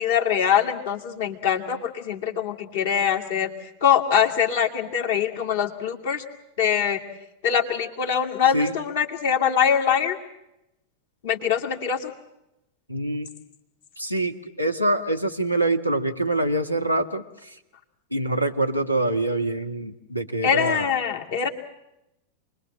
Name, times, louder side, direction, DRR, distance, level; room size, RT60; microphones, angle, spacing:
voice 1, 0.0-3.5 3.8-6.2 6.6-7.0 7.4-10.2 11.2-12.1 20.4-21.5, left 8 dB, 55° left, 4 dB, 2.3 m, -23 dB
voice 2, 12.9-13.3 14.0-17.6 18.1-20.9, right 1 dB, 90° left, 9 dB, 1.5 m, -25 dB
28.5 x 21.0 x 7.6 m, 0.87 s
figure-of-eight pair, 90°, 0 cm